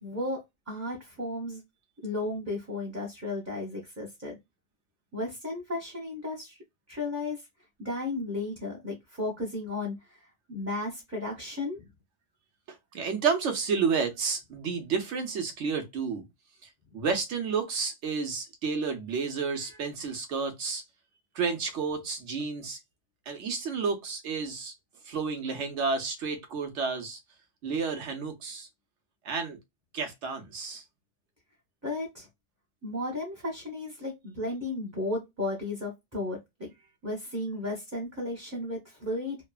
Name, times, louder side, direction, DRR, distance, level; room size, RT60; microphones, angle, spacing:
voice 1, 0.0-0.4 0.7-1.6 2.0-4.4 5.1-6.6 6.9-7.4 7.8-11.9 31.8-32.3 32.8-36.7 37.0-39.4, left 2 dB, 15° right, 0.7 m, -34 dB
voice 2, 12.7-16.2 16.9-20.8 21.3-22.8 23.3-24.7 25.1-27.2 27.6-28.7 29.2-29.6 29.9-30.8, right 5 dB, 80° right, 1.1 m, -31 dB
3.0 x 2.1 x 2.3 m
omnidirectional pair, 1.2 m